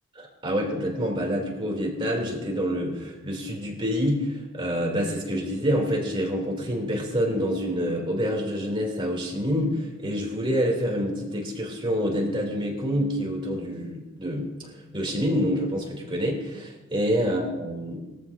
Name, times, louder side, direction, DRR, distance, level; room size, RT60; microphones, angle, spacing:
voice 1, 0.2-18.0, equal, 25° right, -1 dB, 3.1 m, -27 dB
21.0 x 14.0 x 2.8 m, 1.1 s
head